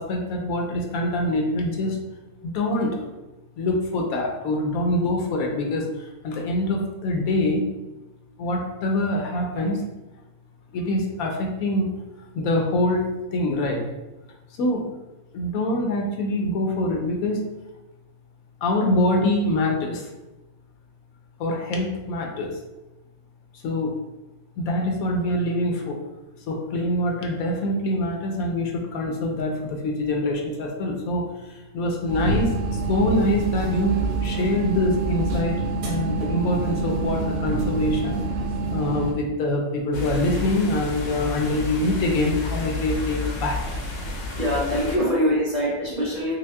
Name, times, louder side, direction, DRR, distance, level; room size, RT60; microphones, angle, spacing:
voice 1, 0.0-2.0 2.4-3.0 3.6-7.7 8.4-9.9 10.7-11.9 12.3-13.8 14.6-14.8 15.3-17.4 18.6-20.1 21.4-22.5 23.6-24.0 24.6-26.0 26.5-32.5 32.9-35.6 35.8-38.2 38.7-43.7, left 1 dB, 80° left, 1 dB, 1.1 m, -24 dB
sound 1, 32.1-39.1, right 3 dB, 85° right, 1.3 m, -26 dB
sound 2, 39.9-45.0, left 3 dB, 60° left, 0.8 m, -31 dB
voice 2, 44.4-46.3, equal, 40° right, -7 dB, 0.8 m, -23 dB
6.1 x 2.0 x 2.2 m, 1.0 s
omnidirectional pair, 1.5 m